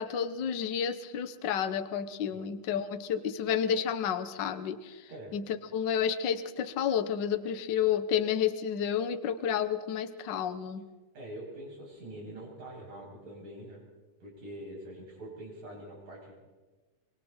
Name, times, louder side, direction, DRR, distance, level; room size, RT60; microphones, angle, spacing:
voice 1, 0.0-5.0 5.3-5.4 5.7-10.8, left 8 dB, 70° left, 10 dB, 1.0 m, -30 dB
voice 2, 11.1-13.8 14.2-16.3, right 1 dB, 90° right, -3 dB, 9.5 m, -44 dB
25.5 x 24.5 x 4.4 m, 1.2 s
omnidirectional pair, 3.6 m